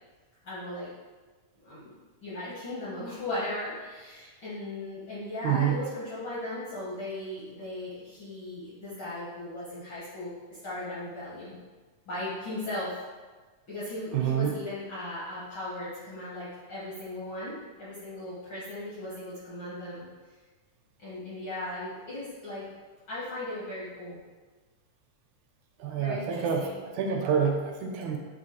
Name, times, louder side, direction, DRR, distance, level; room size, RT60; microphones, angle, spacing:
voice 1, 0.4-0.9 1.6-1.9 2.2-11.5 12.1-13.0 13.7-20.0 21.0-22.7 23.1-24.2 26.0-26.8, left 1 dB, 65° left, -10 dB, 1.2 m, -37 dB
voice 2, 5.4-5.8 14.1-14.5 25.8-26.6 26.9-28.2, right 7 dB, 80° right, 2 dB, 1.8 m, -27 dB
6.2 x 2.7 x 2.9 m, 1.4 s
omnidirectional pair, 3.6 m